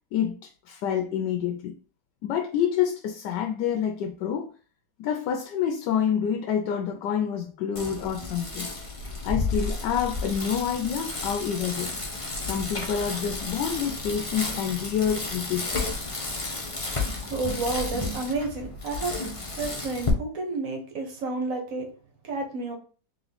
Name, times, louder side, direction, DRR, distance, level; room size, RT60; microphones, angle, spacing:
voice 1, 0.1-1.7 2.2-4.5 5.0-8.7 9.2-11.9 12.4-15.8, left 8 dB, 85° left, 4 dB, 1.2 m, -28 dB
Bicycle, 7.8-20.1, left 3 dB, 30° left, 0.6 m, -32 dB
voice 2, 17.3-19.1 19.6-21.9 22.2-22.8, right 3 dB, 55° right, 2 dB, 1.2 m, -30 dB
3.6 x 3.0 x 4.0 m, 0.39 s
omnidirectional pair, 1.8 m